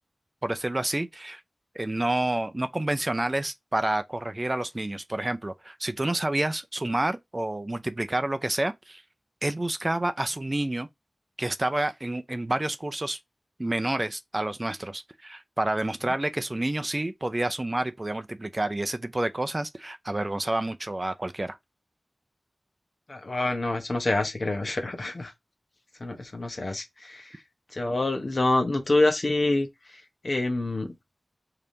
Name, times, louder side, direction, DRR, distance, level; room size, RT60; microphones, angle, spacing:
voice 1, 0.4-1.4 1.7-9.0 9.4-10.9 11.4-13.2 13.6-21.6, right 1 dB, 30° right, 0.5 m, -29 dB
voice 2, 23.1-25.3 26.0-27.3 27.7-29.7 30.2-30.9, left 2 dB, 55° left, 1.0 m, -26 dB
3.4 x 2.8 x 3.8 m
wide cardioid pair, 60°, 0 cm